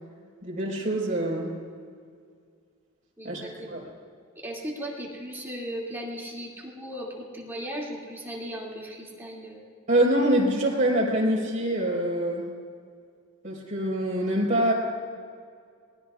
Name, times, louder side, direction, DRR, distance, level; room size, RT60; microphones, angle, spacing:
voice 1, 0.4-1.5 3.2-3.8 9.9-12.5 13.4-14.7, right 1 dB, 40° right, -3 dB, 4.6 m, -25 dB
voice 2, 3.2-3.9 4.4-9.6, equal, 10° right, -4 dB, 2.5 m, -37 dB
27.0 x 20.5 x 2.4 m, 2.2 s
head